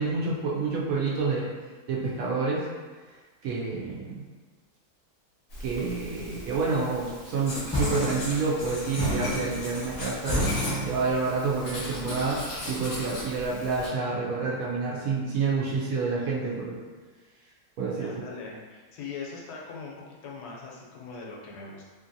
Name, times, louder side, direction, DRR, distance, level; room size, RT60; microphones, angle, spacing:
voice 1, 0.0-1.5 1.9-2.6 3.4-4.2 5.6-16.8 17.8-18.1, right 4 dB, 70° right, -4 dB, 0.9 m, -28 dB
Writing, 5.5-13.9, left 1 dB, 50° left, 0.7 m, -38 dB
sound 1, 7.7-8.6 9.0-11.3, equal, 10° left, 0.7 m, -29 dB
voice 2, 18.0-19.9 20.2-21.8, left 4 dB, 85° left, -3 dB, 1.2 m, -40 dB
2.8 x 2.7 x 2.6 m, 1.4 s
omnidirectional pair, 1.7 m